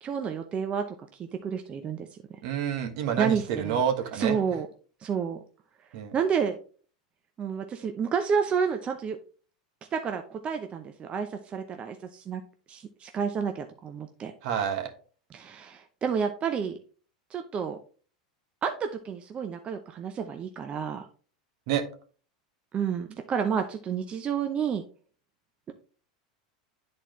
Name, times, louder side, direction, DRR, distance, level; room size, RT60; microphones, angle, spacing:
voice 1, 0.0-0.9 1.1-2.1 3.2-3.8 4.1-4.7 5.0-5.4 6.1-6.6 7.4-9.2 9.9-12.4 12.7-14.3 15.3-16.8 17.3-17.8 18.6-21.1 22.7-24.8, right 6 dB, 30° right, 6 dB, 0.7 m, -30 dB
voice 2, 2.4-4.4 5.9-6.1 14.4-14.9 21.7-21.8, right 8 dB, 60° right, 6 dB, 1.3 m, -28 dB
10.0 x 4.3 x 3.0 m, 0.39 s
hypercardioid pair, 100°, 4 cm